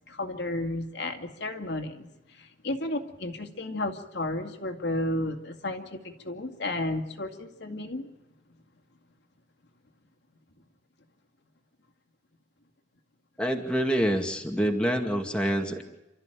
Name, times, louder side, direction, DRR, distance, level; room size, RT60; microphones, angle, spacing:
voice 1, 0.1-8.1, left 1 dB, 65° left, 5 dB, 2.3 m, -33 dB
voice 2, 13.4-15.8, equal, 5° left, 2 dB, 2.3 m, -26 dB
28.5 x 13.5 x 9.2 m, 0.97 s
head